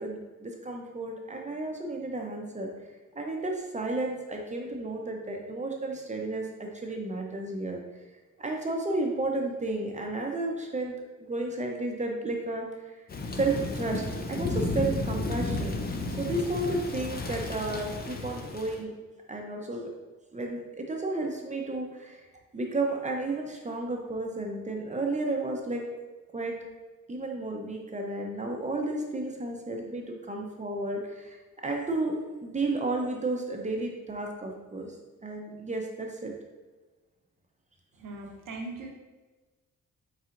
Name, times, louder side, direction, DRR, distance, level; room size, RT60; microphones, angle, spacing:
voice 1, 0.0-2.7 3.1-7.8 8.4-12.7 13.3-15.8 16.2-18.9 19.3-19.9 20.3-22.2 22.5-25.8 26.3-26.6 27.1-31.4 31.6-35.0 35.2-36.3, right 2 dB, 25° right, 1 dB, 0.6 m, -32 dB
Thunder / Rain, 13.1-18.8, left 2 dB, 30° left, 0.5 m, -33 dB
voice 2, 38.0-38.9, right 2 dB, 80° right, 1 dB, 0.8 m, -39 dB
4.3 x 4.1 x 2.5 m, 1.2 s
cardioid pair, 100°, 32 cm